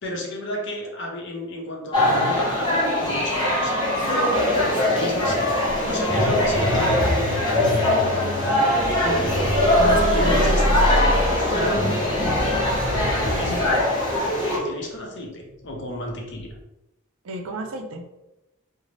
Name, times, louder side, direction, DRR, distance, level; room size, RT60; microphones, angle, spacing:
voice 1, 0.0-8.8 10.1-11.1 11.5-11.9 13.1-13.8 14.5-16.5, left 1 dB, 60° left, 0 dB, 0.6 m, -32 dB
sound 1, 1.9-14.6, left 1 dB, 25° left, 0.8 m, -21 dB
sound 2, 5.6-16.0 16.3-16.6, equal, 25° right, 0.8 m, -29 dB
voice 2, 9.0-9.4 9.8-10.7 12.9-13.7 17.2-18.1, right 2 dB, 80° right, 4 dB, 0.4 m, -30 dB
2.6 x 2.0 x 3.1 m, 0.96 s
head